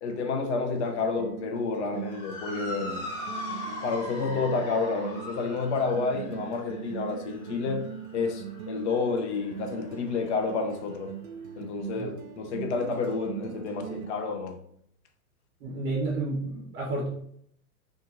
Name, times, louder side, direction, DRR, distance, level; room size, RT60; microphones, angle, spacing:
voice 1, 0.0-3.1 3.8-7.9 8.1-11.1 11.6-14.6, left 4 dB, 50° left, 0.5 m, -30 dB
sound 1, 0.8-14.1, right 9 dB, 70° right, 0.5 m, -41 dB
Motor vehicle (road) / Siren, 2.0-10.5, left 1 dB, 35° left, 1.0 m, -41 dB
voice 2, 15.6-17.1, right 2 dB, 25° right, 0.8 m, -30 dB
2.8 x 2.5 x 2.5 m
hypercardioid pair, 130°, 44 cm